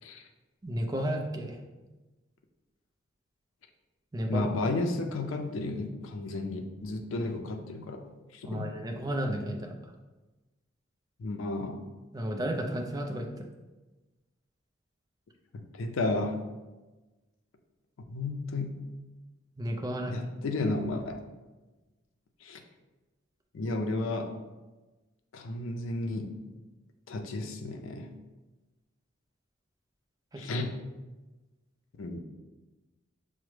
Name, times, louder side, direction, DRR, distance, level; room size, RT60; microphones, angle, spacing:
voice 1, 0.6-1.6 4.1-4.5 8.5-9.7 12.1-13.4 19.6-20.1 30.3-30.6, equal, 20° right, 2 dB, 0.4 m, -33 dB
voice 2, 4.3-8.0 8.3-8.7 11.2-11.8 15.5-16.4 18.1-18.8 20.1-21.2 22.4-22.6 23.5-24.4 25.3-26.4 27.1-28.1 30.4-30.7 32.0-32.2, left 2 dB, 85° left, 5 dB, 0.4 m, -33 dB
5.9 x 2.1 x 3.2 m, 1.2 s
head